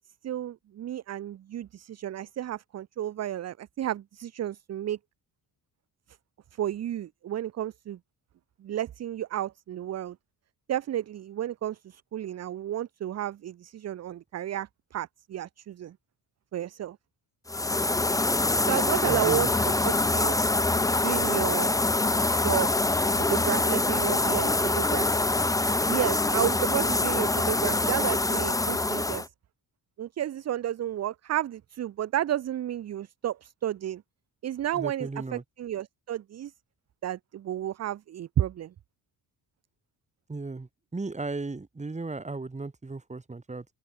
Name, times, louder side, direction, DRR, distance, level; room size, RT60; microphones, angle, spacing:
voice 1, 0.2-5.0 6.5-8.0 8.6-10.2 10.7-16.0 16.5-17.0 18.7-20.3 20.9-21.7 22.4-22.7 23.1-25.3 25.9-29.3 30.0-34.0 34.4-36.5 37.0-38.7, right 11 dB, 40° right, 0.4 m, -32 dB
sound 1, 17.5-29.3, left 2 dB, 10° left, 0.6 m, -25 dB
voice 2, 19.0-19.5 34.7-35.4 40.3-43.7, right 3 dB, 15° right, 3.6 m, -36 dB
open air
wide cardioid pair, 175°, 42 cm